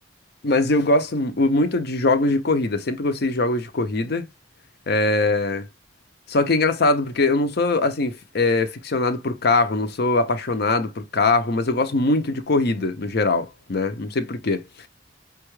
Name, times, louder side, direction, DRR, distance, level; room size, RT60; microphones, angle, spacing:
voice 1, 0.4-4.2 4.9-5.7 6.3-14.9, left 2 dB, 55° left, 0.6 m, -22 dB
5.3 x 2.3 x 3.1 m
head